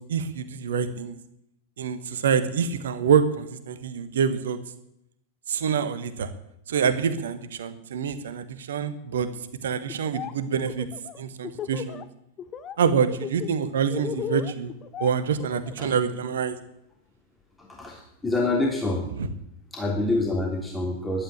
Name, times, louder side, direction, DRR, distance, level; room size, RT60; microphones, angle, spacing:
voice 1, 0.1-1.2 1.8-4.6 5.5-6.3 6.7-9.3 9.6-10.9 11.2-12.0 12.8-14.7 15.0-16.6, right 7 dB, 60° right, 12 dB, 1.3 m, -26 dB
Laughter, 9.9-10.3 10.6-12.0 12.4-12.8 13.1-15.9, left 9 dB, 30° left, 1.0 m, -35 dB
voice 2, 17.6-19.1 19.7-21.2, left 2 dB, 10° left, -2 dB, 3.2 m, -27 dB
12.0 x 10.0 x 8.9 m, 0.78 s
figure-of-eight pair, 90°, 0 cm